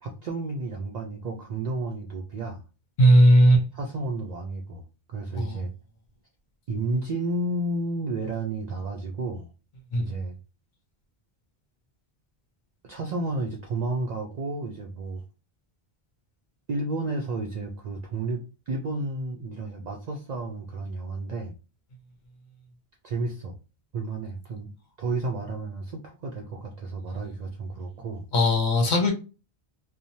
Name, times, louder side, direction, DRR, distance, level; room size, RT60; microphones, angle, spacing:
voice 1, 0.0-2.6 3.7-4.8 5.1-5.7 6.7-9.5 10.0-10.4 12.9-15.2 16.7-21.6 23.0-23.6 23.9-24.7 25.0-28.3, right 2 dB, 55° right, 1 dB, 0.5 m, -31 dB
voice 2, 3.0-3.6 5.4-5.6 9.9-10.1 28.3-29.1, equal, 55° left, 3 dB, 0.8 m, -17 dB
3.0 x 2.0 x 2.7 m, 0.31 s
omnidirectional pair, 1.0 m